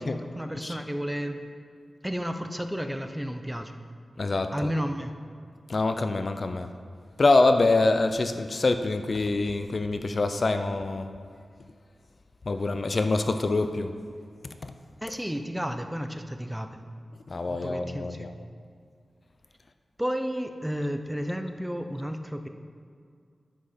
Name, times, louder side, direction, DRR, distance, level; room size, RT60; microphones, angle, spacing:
voice 1, 0.0-1.4 2.0-3.8 4.5-5.2 15.0-16.8 17.5-18.3 20.0-22.5, equal, 5° right, 7 dB, 0.6 m, -32 dB
voice 2, 4.2-4.5 5.7-6.7 7.2-11.1 12.5-14.0 17.3-18.3, left 3 dB, 45° left, 8 dB, 0.5 m, -25 dB
10.0 x 7.7 x 5.2 m, 2.2 s
wide cardioid pair, 120°, 0 cm